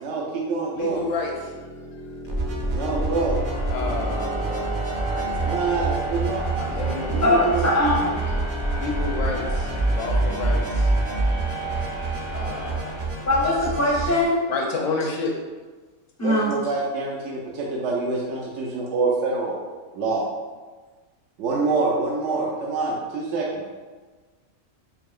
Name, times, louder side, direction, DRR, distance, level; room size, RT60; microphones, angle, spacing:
voice 1, 0.0-1.0 2.7-3.4 5.4-6.5 7.1-7.7 16.2-19.6 19.9-20.2 21.4-23.6, right 3 dB, 70° right, -3 dB, 0.8 m, -26 dB
voice 2, 0.7-1.5 3.7-4.7 5.1-5.3 6.6-7.5 8.8-10.9 12.3-13.0 14.5-15.3, left 3 dB, 70° left, 0 dB, 0.9 m, -30 dB
sound 1, 0.9-13.8, right 2 dB, 85° left, 1.3 m, -33 dB
sound 2, 2.3-14.2, right 2 dB, 50° right, 0.6 m, -27 dB
voice 3, 7.2-8.3 13.3-14.4 16.2-16.5, left 1 dB, 20° left, -5 dB, 0.4 m, -21 dB
4.6 x 2.7 x 2.4 m, 1.3 s
omnidirectional pair, 1.4 m